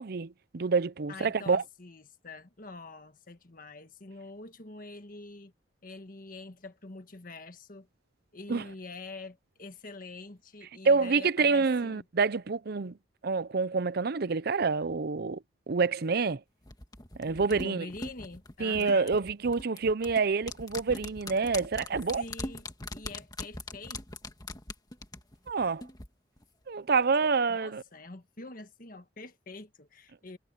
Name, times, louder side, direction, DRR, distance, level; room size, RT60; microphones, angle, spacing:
voice 1, 0.0-1.6 8.5-8.6 10.8-12.9 13.2-16.4 17.2-17.9 18.6-22.2 25.5-25.8 26.7-27.8, right 4 dB, 55° right, 0.6 m, -27 dB
voice 2, 1.1-5.5 5.8-7.9 8.3-12.0 17.5-19.1 22.2-22.7 22.9-24.0 27.5-30.4, left 3 dB, 50° left, 1.5 m, -45 dB
sound 1, 16.7-26.1 26.4-26.5, left 2 dB, 20° left, 1.8 m, -41 dB
head